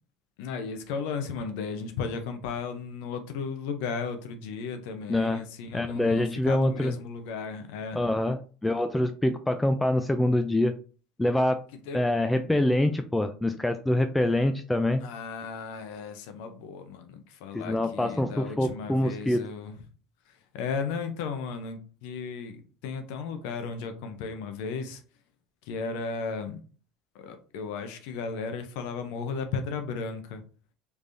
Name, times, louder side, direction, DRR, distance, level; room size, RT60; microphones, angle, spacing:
voice 1, 0.4-8.0 11.9-12.0 15.0-19.7 20.5-25.0 25.7-26.6 27.1-30.4, left 5 dB, 75° left, 0.6 m, -35 dB
voice 2, 5.1-5.4 5.7-7.0 7.9-10.8 11.2-11.6 11.9-15.0 17.5-19.4, left 1 dB, 10° left, 0.3 m, -25 dB
3.3 x 3.3 x 2.6 m
hypercardioid pair, 85°, 0 cm